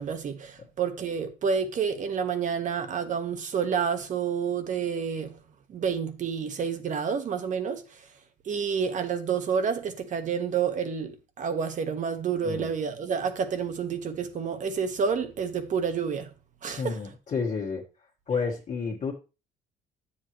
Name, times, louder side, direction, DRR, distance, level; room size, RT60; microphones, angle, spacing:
voice 1, 0.0-5.3 5.7-7.8 8.4-16.3 16.6-17.0, right 6 dB, 50° right, 1.3 m, -29 dB
voice 2, 16.8-17.8 18.3-19.1, left 5 dB, 45° left, 1.7 m, -30 dB
9.8 x 7.4 x 3.1 m
cardioid pair, 110°, 17 cm